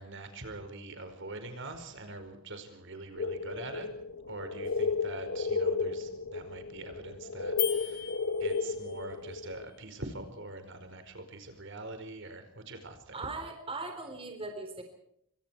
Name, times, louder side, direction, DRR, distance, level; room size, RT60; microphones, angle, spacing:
voice 1, 0.0-3.9 4.2-8.1 8.4-13.2, right 2 dB, 55° right, 8 dB, 4.9 m, -44 dB
sound 1, 3.2-9.6, left 4 dB, 80° left, 1.2 m, -33 dB
sound 2, 7.6-9.1, left 16 dB, 40° left, 2.5 m, -37 dB
voice 2, 13.1-14.8, right 3 dB, 25° right, 5 dB, 3.9 m, -39 dB
27.5 x 25.5 x 4.6 m, 0.72 s
head